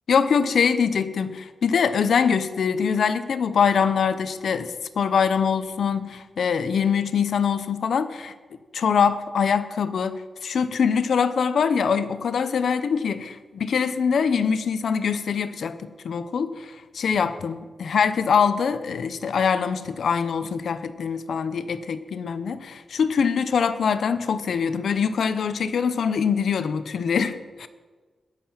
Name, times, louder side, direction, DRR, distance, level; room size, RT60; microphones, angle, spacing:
voice 1, 0.1-8.3 8.7-27.7, left 6 dB, 60° left, 11 dB, 0.7 m, -23 dB
21.0 x 7.7 x 5.7 m, 1.4 s
wide cardioid pair, 180°, 0 cm